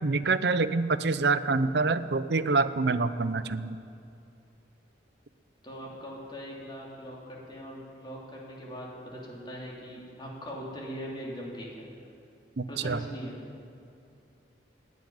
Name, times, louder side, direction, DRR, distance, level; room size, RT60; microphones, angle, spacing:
voice 1, 0.0-3.8 12.6-13.0, right 3 dB, 60° right, 12 dB, 0.6 m, -26 dB
voice 2, 5.6-11.9 12.7-13.3, equal, 25° left, -3 dB, 3.1 m, -41 dB
16.0 x 9.4 x 9.5 m, 2.6 s
head